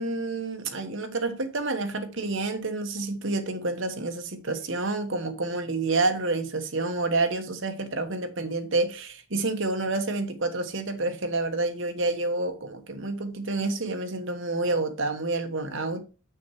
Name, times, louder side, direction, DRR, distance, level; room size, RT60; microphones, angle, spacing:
voice 1, 0.0-16.0, right 2 dB, 60° right, 1.2 m, -28 dB
6.9 x 6.2 x 4.6 m
head